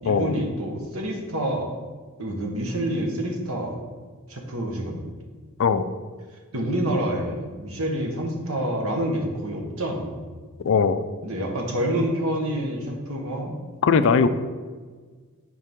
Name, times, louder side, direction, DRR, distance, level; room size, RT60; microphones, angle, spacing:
voice 1, 0.0-1.7 2.2-3.8 4.3-5.0 6.5-10.2 11.2-13.6, right 1 dB, 70° right, 1 dB, 1.3 m, -27 dB
voice 2, 10.6-11.0 13.8-14.3, left 5 dB, 60° left, 12 dB, 0.4 m, -19 dB
9.4 x 4.7 x 3.6 m, 1.5 s
head